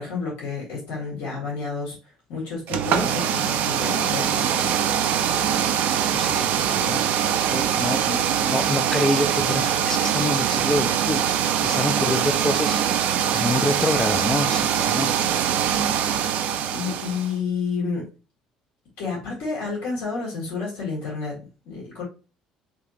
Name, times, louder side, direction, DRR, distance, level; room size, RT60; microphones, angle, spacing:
voice 1, 0.0-2.0 2.3-4.8 16.7-18.1 19.0-22.0, left 4 dB, 65° left, -4 dB, 1.6 m, -30 dB
sound 1, 2.7-17.3, right 9 dB, 60° right, 0.4 m, -23 dB
voice 2, 6.0-7.0 7.3-12.8 13.3-15.1, left 2 dB, 15° left, 11 dB, 0.4 m, -27 dB
3.4 x 2.5 x 2.7 m, 0.33 s
hypercardioid pair, 55°, 3 cm